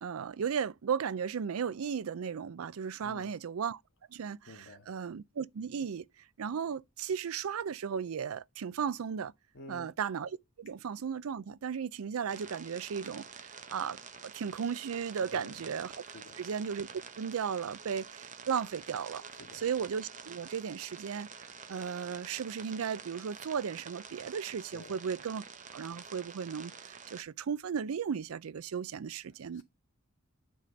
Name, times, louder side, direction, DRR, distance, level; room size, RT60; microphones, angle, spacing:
voice 1, 0.0-3.8 4.1-6.0 6.4-9.3 9.7-14.0 14.2-15.9 16.4-16.9 17.2-19.2 19.5-25.4 25.7-29.6, right 7 dB, 85° right, 0.4 m, -35 dB
voice 2, 3.0-3.3 4.5-4.9 9.5-9.9 15.3-15.5 16.1-16.4 19.3-19.6 24.7-25.0 29.5-29.6, left 2 dB, 60° left, 1.6 m, -50 dB
sound 1, 12.3-27.2, right 6 dB, 35° right, 0.8 m, -48 dB
9.3 x 3.6 x 5.1 m
head